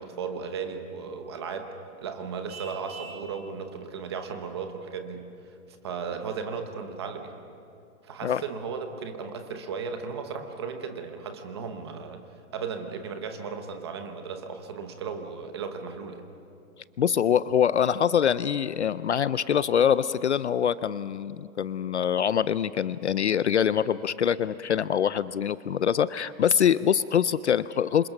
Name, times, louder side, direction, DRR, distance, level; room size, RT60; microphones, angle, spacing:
voice 1, 0.0-1.7 2.0-5.5 5.8-7.3 8.0-12.2 12.5-16.2, right 5 dB, 20° right, 6 dB, 0.9 m, -35 dB
Vehicle horn car horn honking, 2.5-3.3, right 4 dB, 45° right, 2.5 m, -43 dB
voice 2, 17.0-28.1, left 8 dB, 50° left, 16 dB, 0.5 m, -24 dB
28.0 x 26.5 x 6.0 m, 2.6 s
hypercardioid pair, 180°, 43 cm